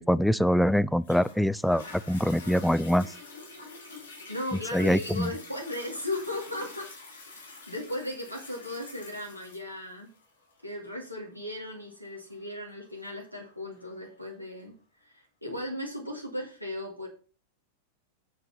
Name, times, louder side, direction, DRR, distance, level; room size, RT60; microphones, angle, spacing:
voice 1, 0.0-3.1 4.7-5.3, equal, ahead, 0.3 m, -24 dB
Toilet flush, 1.0-14.1 14.7-14.8, left 3 dB, 65° left, 3.2 m, -47 dB
voice 2, 4.3-7.4 7.7-10.1 10.6-14.7 15.0-17.1, left 1 dB, 90° left, 2.4 m, -36 dB
7.4 x 6.8 x 4.2 m
figure-of-eight pair, 90°, 0 cm